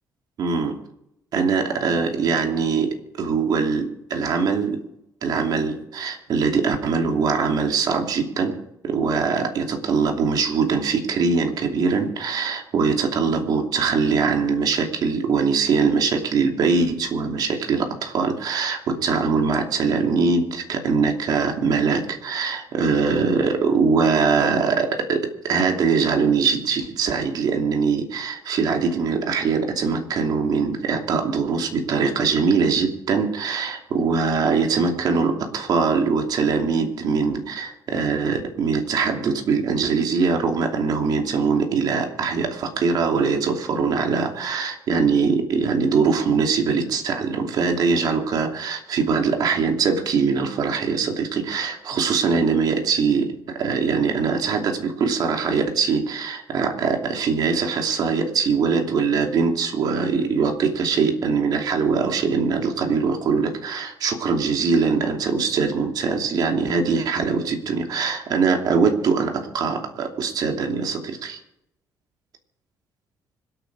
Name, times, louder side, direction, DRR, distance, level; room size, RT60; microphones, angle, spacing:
voice 1, 0.4-0.8 1.3-4.8 5.2-71.4, right 5 dB, 65° right, 3 dB, 2.8 m, -22 dB
25.5 x 8.8 x 4.8 m, 0.82 s
cardioid pair, 100°, 7 cm